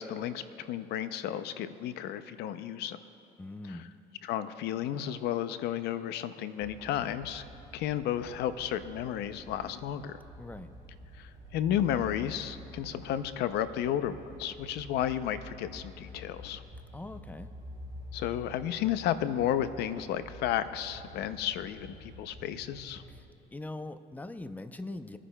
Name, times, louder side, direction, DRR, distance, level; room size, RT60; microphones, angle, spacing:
voice 1, 0.0-3.0 4.2-7.4 7.7-10.2 11.2-16.6 18.1-23.0, left 10 dB, 80° left, 12 dB, 0.5 m, -32 dB
voice 2, 3.4-3.9 10.4-10.7 16.9-17.5 23.1-23.2 23.5-25.2, left 2 dB, 10° left, 10 dB, 0.5 m, -41 dB
sound 1, 6.6-23.2, left 1 dB, 25° right, 2.7 m, -49 dB
27.0 x 9.8 x 2.2 m, 2.9 s
cardioid pair, 110°, 17 cm